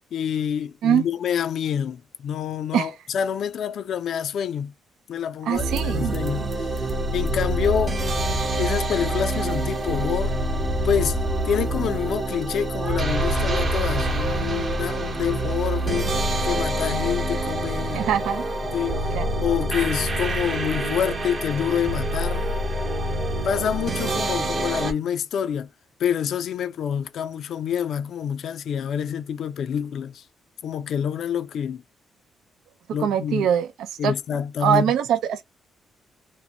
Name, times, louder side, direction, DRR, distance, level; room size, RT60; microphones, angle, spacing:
voice 1, 0.1-4.7 5.1-8.0 8.6-10.3 10.8-11.2 11.4-18.0 18.7-19.1 19.4-22.5 23.4-25.7 26.0-30.2 30.6-31.8 32.9-33.5 34.0-34.9, left 8 dB, 65° left, 0.4 m, -27 dB
sound 1, 5.5-24.9, right 1 dB, 40° right, 0.9 m, -26 dB
voice 2, 5.5-6.1 17.9-18.4 19.1-19.3 33.0-33.7 34.0-34.1 34.6-35.4, right 9 dB, 80° right, 0.3 m, -22 dB
2.6 x 2.1 x 2.7 m
cardioid pair, 90°, 0 cm